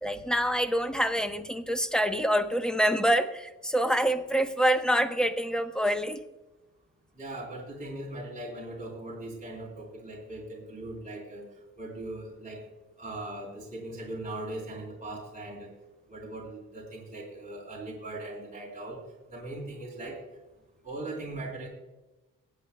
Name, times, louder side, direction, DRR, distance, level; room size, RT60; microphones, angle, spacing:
voice 1, 0.0-6.2, right 1 dB, ahead, 8 dB, 0.9 m, -26 dB
voice 2, 7.2-11.5 11.8-12.6 13.0-15.7 16.1-19.0 19.3-20.2 20.8-21.7, right 2 dB, 25° right, -3 dB, 3.5 m, -39 dB
24.5 x 8.5 x 2.2 m, 1.1 s
cardioid pair, 105°, 33 cm